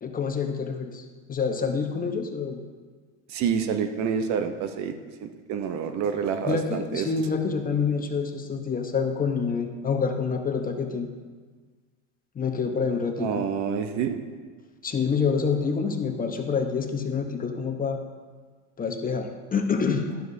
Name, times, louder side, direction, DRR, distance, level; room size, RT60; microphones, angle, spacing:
voice 1, 0.0-2.6 6.5-11.1 12.3-13.4 14.8-18.0 18.8-20.2, left 5 dB, 25° left, 4 dB, 0.9 m, -27 dB
voice 2, 3.3-4.9 5.2-7.1 13.2-14.2, right 7 dB, 50° right, 8 dB, 0.8 m, -28 dB
11.5 x 7.6 x 2.7 m, 1.5 s
hypercardioid pair, 90°, 36 cm